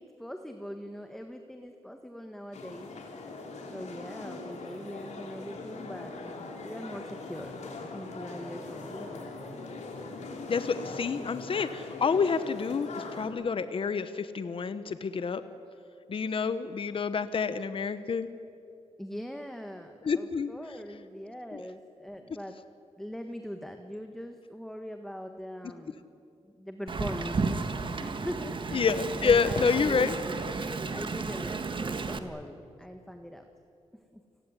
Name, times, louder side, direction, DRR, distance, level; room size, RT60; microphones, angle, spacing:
voice 1, 0.0-2.9 3.7-6.1 6.6-7.5 7.9-9.4 19.0-22.6 23.0-26.0 26.4-28.9 29.2-30.4 30.9-33.4 34.1-34.2, equal, 5° left, 5 dB, 1.5 m, -41 dB
sound 1, 2.5-13.3, left 3 dB, 75° left, 3.9 m, -41 dB
voice 2, 10.5-15.4 16.1-18.3 20.0-20.5 21.5-21.6 28.7-30.1, left 5 dB, 50° left, 12 dB, 1.0 m, -28 dB
Wind, 26.9-32.2, right 4 dB, 45° right, 1.7 m, -33 dB
30.0 x 18.5 x 9.9 m, 2.7 s
wide cardioid pair, 110°, 12 cm